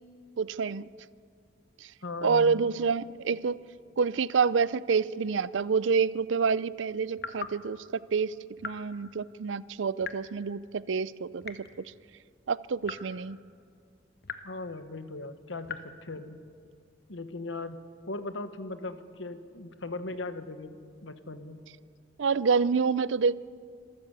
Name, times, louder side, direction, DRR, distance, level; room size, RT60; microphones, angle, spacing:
voice 1, 0.4-0.9 1.8-1.9 2.2-3.6 4.0-8.3 8.6-11.9 12.5-13.4 22.2-23.4, right 5 dB, 75° right, 19 dB, 0.5 m, -27 dB
voice 2, 2.0-2.6 14.4-16.4 17.1-17.8 18.1-21.6, left 2 dB, 80° left, 10 dB, 1.3 m, -38 dB
sound 1, 7.2-7.6 8.6-8.9 10.0-10.3 11.4-11.8 12.8-13.1 14.2-14.5 15.6-15.9, left 5 dB, 55° left, 1.2 m, -39 dB
26.5 x 13.0 x 8.2 m, 2.2 s
head